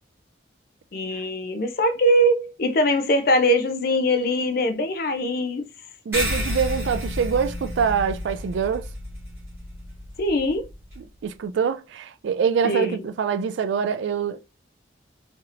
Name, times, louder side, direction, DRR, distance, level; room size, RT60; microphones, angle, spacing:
voice 1, 0.9-5.7 10.2-10.7 12.6-13.0, equal, 50° left, 0.4 m, -22 dB
sound 1, 6.1-11.0, equal, 15° right, 1.3 m, -31 dB
voice 2, 6.1-8.9 11.0-14.4, right 6 dB, 75° right, 0.3 m, -25 dB
3.2 x 2.7 x 2.5 m
head